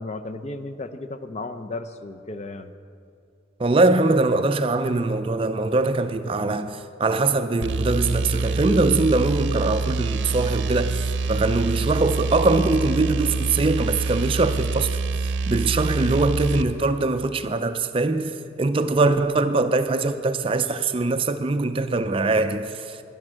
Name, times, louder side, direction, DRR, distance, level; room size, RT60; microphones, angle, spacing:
voice 1, 0.0-2.7, left 2 dB, 35° left, 0.5 m, -34 dB
voice 2, 3.6-14.9 15.2-23.0, right 3 dB, 30° right, 0.4 m, -22 dB
sound 1, 7.6-16.7, right 3 dB, 70° right, 0.6 m, -26 dB
11.0 x 10.5 x 6.2 m
head